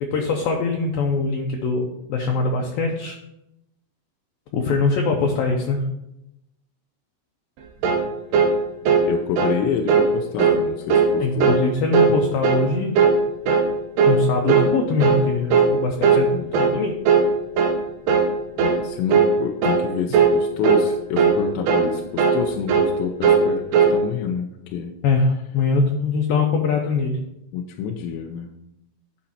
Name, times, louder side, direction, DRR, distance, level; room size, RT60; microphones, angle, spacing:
voice 1, 0.0-3.1 4.5-5.8 11.2-13.0 14.1-16.9 25.0-27.2, left 4 dB, 75° left, 1 dB, 2.2 m, -22 dB
sound 1, 7.8-8.1 8.3-8.6 8.9-9.1 9.4-9.6 9.9-10.1 10.4-10.6 10.9-11.1 11.4-11.6 11.9-12.2 12.4-12.7 13.0-13.2 13.5-13.7 14.0-14.2 14.5-14.7 15.0-15.3 15.5-15.7 16.0-16.3 16.5-16.8 17.1-17.3 17.6-17.8 18.1-18.3 18.6-18.8 19.1-19.3 19.6-19.9 20.1-20.4 20.6-20.9 21.2-21.4 21.7-21.9 22.2-22.4 22.7-22.9 23.2-23.5 23.7-24.0, right 5 dB, 75° right, 2.9 m, -17 dB
voice 2, 9.1-11.6 16.3-16.6 18.6-24.9 27.5-28.5, left 7 dB, 90° left, 3 dB, 3.0 m, -28 dB
12.0 x 5.2 x 4.2 m, 0.85 s
omnidirectional pair, 5.0 m